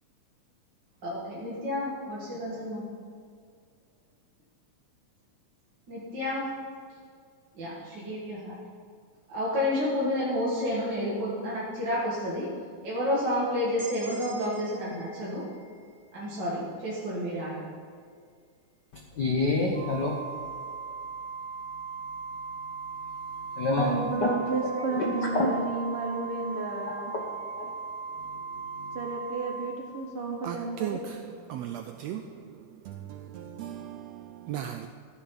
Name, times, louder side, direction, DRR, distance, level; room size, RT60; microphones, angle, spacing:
voice 1, 1.0-2.8 5.9-6.5 7.5-8.6 9.3-12.5 12.8-15.4 16.1-17.6, left 1 dB, 40° right, 2.4 m, -30 dB
sound 1, 13.8-17.6, right 3 dB, 20° right, 3.3 m, -48 dB
voice 2, 18.9-20.2 23.5-23.9 24.2-24.3 24.6-25.5 26.9-27.2 27.6-27.7 28.5-29.0, left 3 dB, 75° left, 0.9 m, -28 dB
Organ, 19.7-30.5, right 4 dB, 45° left, 2.2 m, -38 dB
voice 3, 23.8-27.1 28.9-31.0, right 4 dB, 65° right, 1.5 m, -32 dB
voice 4, 30.4-32.6 32.8-34.9, right 10 dB, 90° right, 1.5 m, -37 dB
15.0 x 10.0 x 4.0 m
omnidirectional pair, 3.6 m